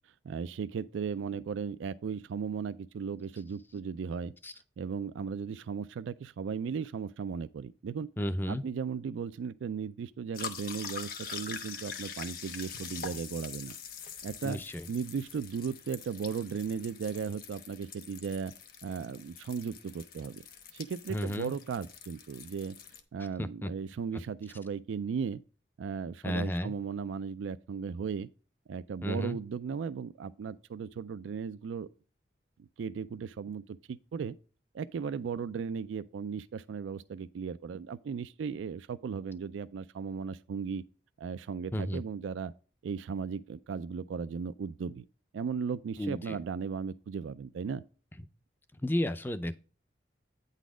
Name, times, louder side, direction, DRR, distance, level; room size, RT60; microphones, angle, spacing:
voice 1, 0.2-4.3 4.8-8.1 8.5-13.7 14.2-14.6 14.9-18.5 18.8-20.4 20.7-22.8 23.1-25.4 25.8-28.3 28.7-31.9 32.6-34.4 34.7-40.8 41.2-42.5 42.8-45.0 45.3-47.8, right 6 dB, 90° right, 0.3 m, -36 dB
voice 2, 8.2-8.6 14.4-14.9 21.1-21.5 23.2-23.7 26.2-26.7 29.0-29.4 41.7-42.0 46.0-46.4 48.2-48.3 48.8-49.6, left 1 dB, 10° left, 0.4 m, -33 dB
sound 1, 10.3-23.0, left 7 dB, 50° left, 1.0 m, -44 dB
9.1 x 4.1 x 4.8 m
head